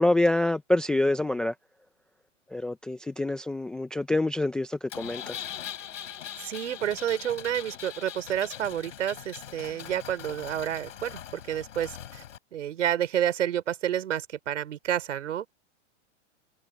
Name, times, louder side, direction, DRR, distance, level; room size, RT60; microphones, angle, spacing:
voice 1, 0.0-1.5 2.5-5.4, left 2 dB, ahead, 0.3 m, -26 dB
Engine, 4.9-12.4, left 10 dB, 85° left, 3.6 m, -41 dB
voice 2, 6.4-12.2 12.5-15.6, right 10 dB, 80° right, 5.3 m, -30 dB
hypercardioid pair, 145°, 36 cm